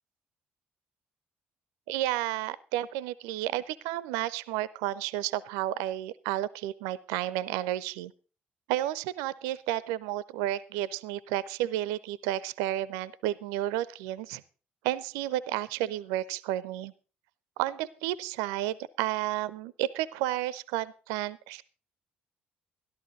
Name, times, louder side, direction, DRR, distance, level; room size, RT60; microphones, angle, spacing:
voice 1, 1.9-8.1 8.7-14.4 14.8-16.9 17.6-21.6, right 14 dB, 65° right, 19 dB, 0.5 m, -32 dB
13.5 x 12.5 x 3.9 m, 0.36 s
figure-of-eight pair, 45°, 6 cm